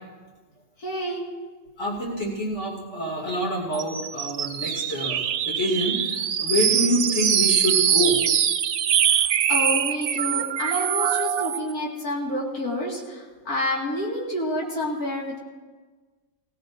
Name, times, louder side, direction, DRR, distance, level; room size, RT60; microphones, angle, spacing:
voice 1, 0.8-1.3 9.0-15.4, left 1 dB, 85° left, -3 dB, 2.5 m, -29 dB
voice 2, 1.8-5.2 5.4-6.0 6.4-8.2, equal, 50° left, -3 dB, 2.9 m, -26 dB
sound 1, 3.7-11.7, right 9 dB, 70° right, 0.5 m, -23 dB
20.0 x 16.0 x 2.6 m, 1.4 s
omnidirectional pair, 1.5 m